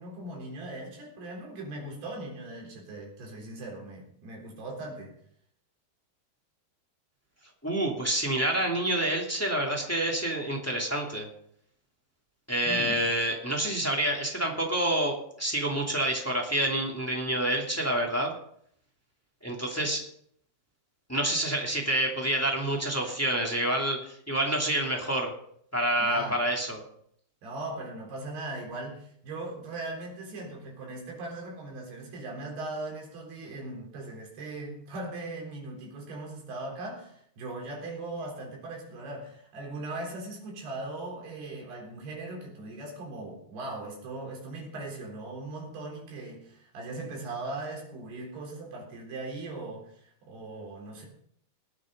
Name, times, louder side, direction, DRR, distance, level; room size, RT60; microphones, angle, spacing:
voice 1, 0.0-5.2 12.6-13.0 26.0-26.4 27.4-49.9 50.2-51.1, right 2 dB, 75° right, 5.8 m, -39 dB
voice 2, 7.6-11.3 12.5-18.3 19.4-20.0 21.1-25.3 25.7-26.8, right 1 dB, 5° left, 1.5 m, -28 dB
19.0 x 8.8 x 5.4 m
omnidirectional pair, 4.6 m